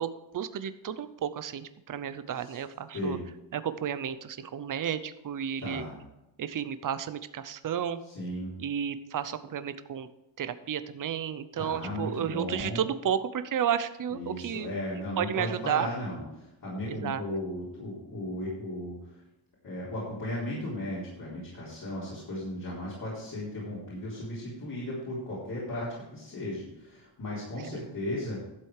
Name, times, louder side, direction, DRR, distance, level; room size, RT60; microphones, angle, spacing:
voice 1, 0.0-3.2 3.5-5.9 6.4-8.0 8.6-10.1 10.4-15.9 16.9-17.2 27.7-27.9, right 8 dB, 45° right, 12 dB, 0.7 m, -32 dB
voice 2, 5.6-5.9 8.1-8.5 11.6-12.8 14.1-19.2 19.6-28.4, left 1 dB, 45° left, -7 dB, 3.9 m, -36 dB
12.0 x 7.6 x 4.8 m, 0.95 s
wide cardioid pair, 150°, 46 cm